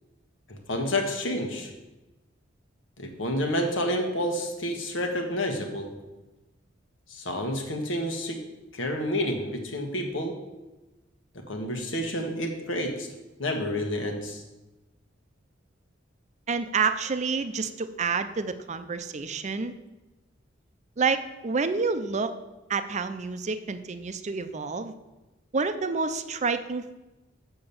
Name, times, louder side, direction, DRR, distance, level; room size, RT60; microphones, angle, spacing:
voice 1, 0.5-1.7 3.0-5.9 7.1-8.5 8.7-10.4 11.5-13.1 13.4-14.4, left 1 dB, 90° left, 3 dB, 1.5 m, -29 dB
voice 2, 16.5-19.7 21.0-22.3 22.7-24.9 25.5-27.0, right 4 dB, 40° right, 11 dB, 0.5 m, -28 dB
6.9 x 6.3 x 7.0 m, 1.1 s
head